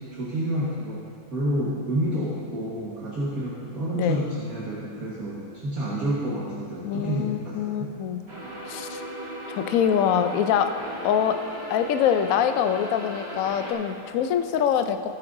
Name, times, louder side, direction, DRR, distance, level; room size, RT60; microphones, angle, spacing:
voice 1, 0.1-1.0 1.3-7.9, right 1 dB, 50° right, -7 dB, 2.0 m, -29 dB
voice 2, 3.9-4.3 6.8-8.2 8.7-9.0 9.5-10.7 11.0-11.4 11.7-15.0, left 8 dB, 85° left, 8 dB, 0.7 m, -24 dB
sound 1, 8.3-13.7, equal, 35° right, 2.5 m, -37 dB
19.5 x 8.6 x 2.6 m, 2.6 s
omnidirectional pair, 2.0 m